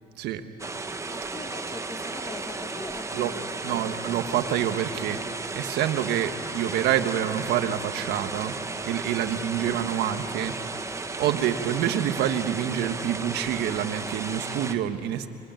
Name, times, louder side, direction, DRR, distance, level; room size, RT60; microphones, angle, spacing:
sound 1, 0.6-14.7, right 3 dB, 15° right, 1.2 m, -34 dB
voice 1, 1.1-4.2 6.2-6.4 9.2-9.8, left 3 dB, 20° left, 7 dB, 1.4 m, -42 dB
voice 2, 3.6-5.2 5.5-8.6 8.8-10.6 10.9-15.3, right 10 dB, 80° right, 8 dB, 1.5 m, -27 dB
26.5 x 23.0 x 9.2 m, 2.8 s
cardioid pair, 110°, 17 cm